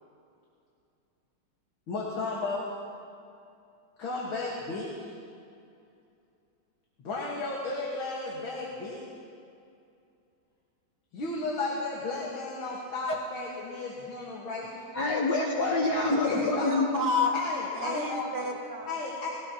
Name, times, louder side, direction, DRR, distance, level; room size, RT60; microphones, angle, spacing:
voice 1, 1.9-2.7 4.0-5.1 7.0-9.1 11.1-14.7 16.3-16.7 17.3-18.3 18.9-19.3, left 3 dB, 75° left, -4 dB, 2.4 m, -34 dB
voice 2, 14.9-16.9, left 2 dB, 55° left, -1 dB, 1.6 m, -26 dB
voice 3, 16.2-17.3 17.7-18.9, left 2 dB, 10° right, 0 dB, 1.1 m, -31 dB
20.0 x 17.0 x 3.0 m, 2.5 s
omnidirectional pair, 2.3 m